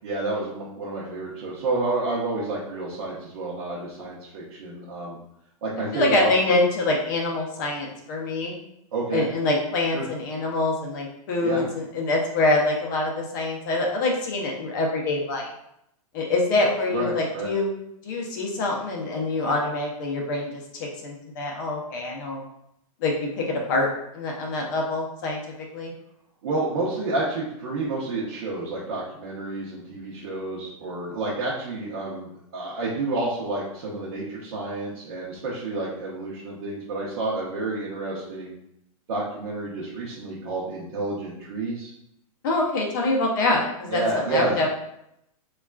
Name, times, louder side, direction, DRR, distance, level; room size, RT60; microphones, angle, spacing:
voice 1, 0.0-5.2 5.6-6.3 8.9-9.2 9.9-10.1 11.4-11.6 16.9-17.5 26.4-38.6 39.1-41.9 43.9-44.7, right 2 dB, 50° right, -6 dB, 0.7 m, -29 dB
voice 2, 5.9-8.5 9.1-15.5 16.1-17.8 18.0-20.5 20.8-22.4 23.0-23.9 24.1-25.4 25.7-25.9 42.4-44.7, left 2 dB, 30° left, 0 dB, 0.5 m, -25 dB
3.5 x 2.3 x 2.2 m, 0.79 s
hypercardioid pair, 165°, 19 cm